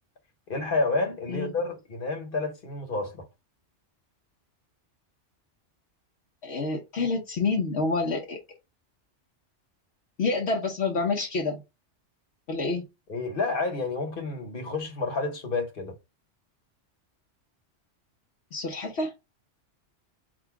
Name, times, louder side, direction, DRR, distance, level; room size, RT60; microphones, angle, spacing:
voice 1, 0.5-3.2 13.1-15.9, left 3 dB, 50° left, 1.3 m, -29 dB
voice 2, 6.4-8.4 10.2-11.6 12.5-12.8 18.5-19.1, left 3 dB, 65° left, 1.1 m, -28 dB
3.8 x 2.6 x 4.6 m
omnidirectional pair, 1.2 m